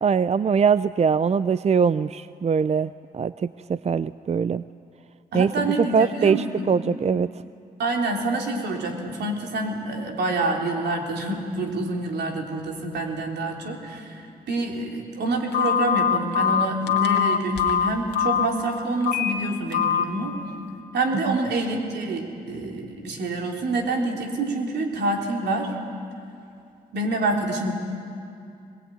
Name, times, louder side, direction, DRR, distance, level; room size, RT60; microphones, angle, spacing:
voice 1, 0.0-4.6 5.3-5.7 5.9-7.3 21.3-21.4, right 6 dB, 40° right, 15 dB, 0.5 m, -22 dB
voice 2, 5.3-6.8 7.8-14.2 14.5-20.3 20.9-25.7 26.9-27.7, right 2 dB, 80° right, 1 dB, 3.4 m, -27 dB
Telephone, 15.5-18.5 19.0-19.3 19.7-20.0, left 8 dB, 85° left, 1.8 m, -22 dB
23.0 x 21.0 x 9.3 m, 2.5 s
supercardioid pair, 55°, 17 cm